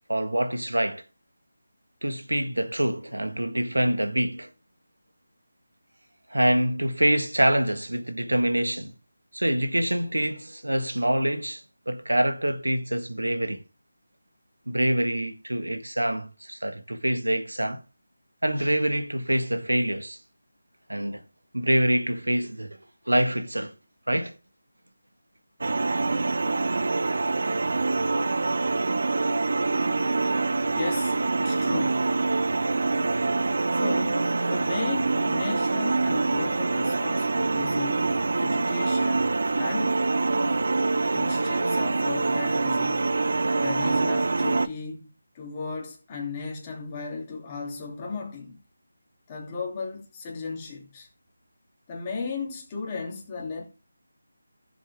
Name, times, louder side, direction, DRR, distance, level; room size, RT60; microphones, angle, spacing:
voice 1, 0.1-1.0 2.0-4.5 6.3-8.9 9.3-11.6 11.9-13.6 14.7-17.8 18.4-20.2 20.9-21.2 21.5-22.8 23.1-23.7 24.1-24.3, right 1 dB, 85° right, 1.6 m, -25 dB
sound 1, 25.6-44.7, right 3 dB, 55° right, 0.7 m, -25 dB
voice 2, 30.7-32.1 33.7-38.1 38.4-40.0 41.1-43.1 43.6-45.1 45.3-48.6 49.3-51.1 51.9-53.6, left 4 dB, 20° left, 2.8 m, -35 dB
15.0 x 7.2 x 3.6 m
figure-of-eight pair, 160°, 0 cm